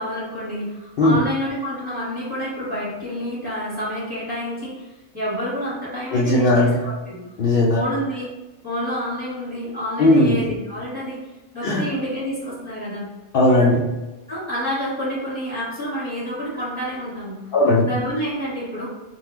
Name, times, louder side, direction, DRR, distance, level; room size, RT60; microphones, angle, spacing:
voice 1, 0.0-4.9 5.1-7.2 7.7-8.3 8.6-11.2 11.5-13.1 14.3-17.5 17.8-18.9, equal, 5° right, -9 dB, 1.3 m, -28 dB
voice 2, 6.1-6.8 7.4-7.8 10.0-10.4 11.6-11.8 13.3-13.9 17.5-17.9, left 1 dB, 80° left, -4 dB, 0.5 m, -17 dB
3.8 x 2.2 x 2.9 m, 1.1 s
omnidirectional pair, 1.5 m